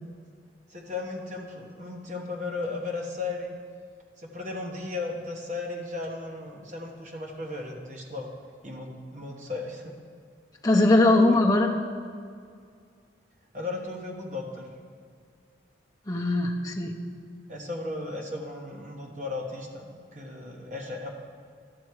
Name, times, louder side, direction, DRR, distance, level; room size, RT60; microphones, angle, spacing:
voice 1, 0.7-3.5 4.2-8.3 8.6-9.9 13.5-14.7 17.5-21.1, left 3 dB, 40° right, 0 dB, 1.2 m, -35 dB
voice 2, 10.6-11.7 16.1-17.0, left 2 dB, 20° left, 0 dB, 0.8 m, -21 dB
12.5 x 6.2 x 4.7 m, 2.1 s
head